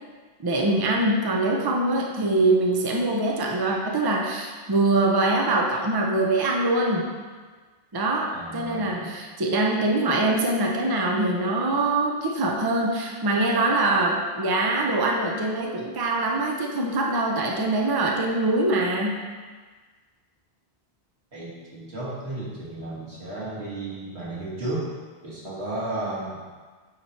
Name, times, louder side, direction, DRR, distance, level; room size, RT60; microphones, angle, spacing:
voice 1, 0.4-7.1 7.9-19.2, right 2 dB, 25° right, 0 dB, 0.6 m, -23 dB
voice 2, 8.3-9.0 21.3-24.9 25.2-26.4, right 2 dB, 85° right, -7 dB, 2.0 m, -33 dB
8.9 x 3.1 x 4.2 m, 1.4 s
omnidirectional pair, 1.1 m